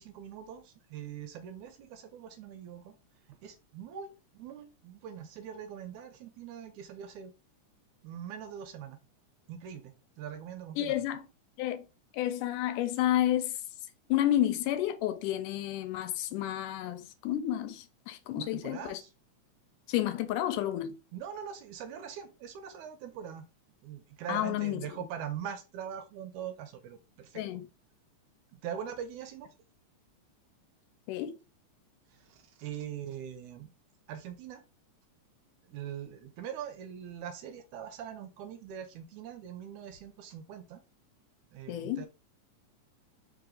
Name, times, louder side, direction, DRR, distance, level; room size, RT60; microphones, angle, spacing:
voice 1, 0.0-3.0 3.4-7.3 8.0-9.0 9.5-11.1 18.4-19.1 21.1-23.5 23.8-27.4 28.5-29.5 32.2-33.7 34.1-34.6 35.6-40.8 41.5-42.1, right 9 dB, 80° right, 2.0 m, -42 dB
voice 2, 10.8-11.3 11.6-11.9 12.1-13.6 14.1-19.0 19.9-21.0 24.3-24.8 27.4-27.7 31.1-31.4 41.7-42.1, left 12 dB, 90° left, 2.2 m, -30 dB
4.8 x 2.9 x 3.8 m
omnidirectional pair, 3.6 m